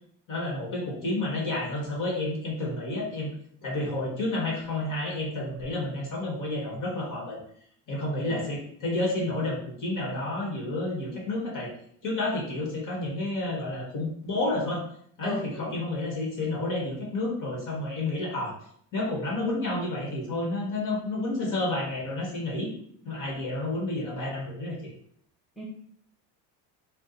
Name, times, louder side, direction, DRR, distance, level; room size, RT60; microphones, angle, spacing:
voice 1, 0.3-3.3 3.6-7.4 7.9-11.7 12.0-14.8 15.2-18.5 18.9-22.7 23.0-24.8, left 2 dB, 45° left, -3 dB, 2.0 m, -30 dB
voice 2, 15.2-15.8 25.6-25.7, left 1 dB, ahead, -4 dB, 1.2 m, -38 dB
5.1 x 2.5 x 4.1 m, 0.64 s
cardioid pair, 125°, 42 cm